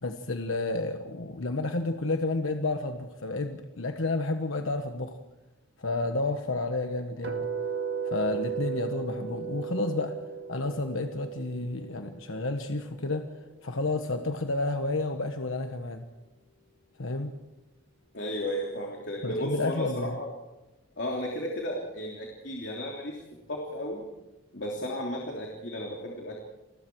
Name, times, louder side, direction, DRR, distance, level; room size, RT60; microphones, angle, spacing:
voice 1, 0.0-5.2 5.8-7.5 8.0-10.2 10.5-13.3 13.6-16.1 17.0-17.4 19.2-20.2, left 2 dB, 70° left, 6 dB, 1.3 m, -31 dB
sound 1, 7.2-13.3, right 6 dB, 55° right, 1.9 m, -36 dB
voice 2, 18.1-20.3 21.0-23.2 23.5-24.0 24.5-26.4, equal, 55° left, -1 dB, 3.2 m, -34 dB
29.0 x 20.5 x 4.7 m, 1.0 s
head